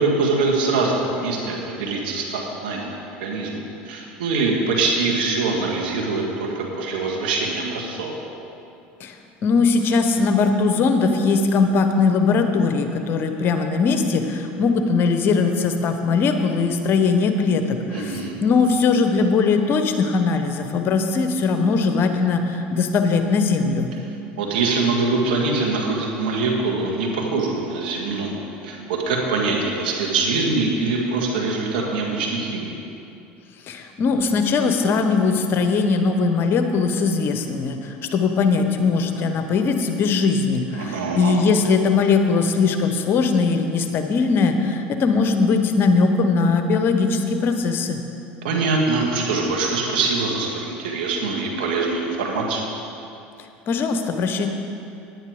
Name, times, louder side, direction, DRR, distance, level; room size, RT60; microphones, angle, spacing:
voice 1, 0.0-3.6 3.9-8.1 17.9-18.4 24.4-28.3 28.6-32.8 40.7-41.4 48.4-52.6, right 3 dB, 80° right, -1 dB, 2.0 m, -23 dB
voice 2, 9.4-23.9 33.7-48.0 53.7-54.5, left 4 dB, 45° left, 6 dB, 1.0 m, -20 dB
10.0 x 9.5 x 5.1 m, 2.7 s
hypercardioid pair, 90°, 5 cm